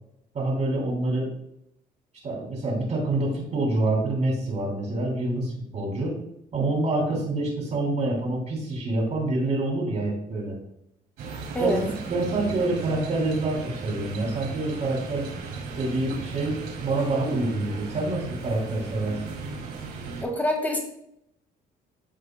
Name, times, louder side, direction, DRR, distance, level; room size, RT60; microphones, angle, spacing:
voice 1, 0.3-1.3 2.2-6.2 6.5-10.6 11.6-11.7 12.1-15.3 15.8-19.3, right 2 dB, 45° right, -3 dB, 2.7 m, -27 dB
sound 1, 11.2-20.2, right 4 dB, 80° right, 2.6 m, -36 dB
voice 2, 11.5-11.9 20.2-20.8, left 1 dB, 10° left, 2 dB, 2.0 m, -25 dB
14.0 x 4.7 x 2.2 m, 0.78 s
cardioid pair, 110°, 17 cm